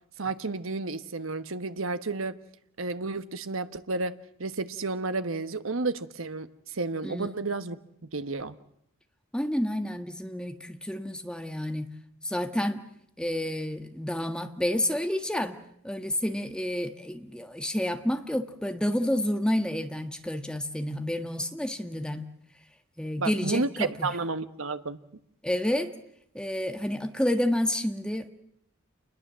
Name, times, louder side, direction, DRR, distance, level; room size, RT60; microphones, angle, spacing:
voice 1, 0.2-2.3 2.8-4.1 4.4-7.8 8.1-8.5 23.2-25.0, right 3 dB, 85° right, 11 dB, 1.3 m, -31 dB
voice 2, 9.3-11.9 12.2-12.9 13.2-15.6 15.8-22.2 23.0-24.2 25.4-25.9 26.3-28.3, left 1 dB, 5° left, 7 dB, 1.6 m, -29 dB
28.5 x 21.0 x 7.5 m, 0.74 s
head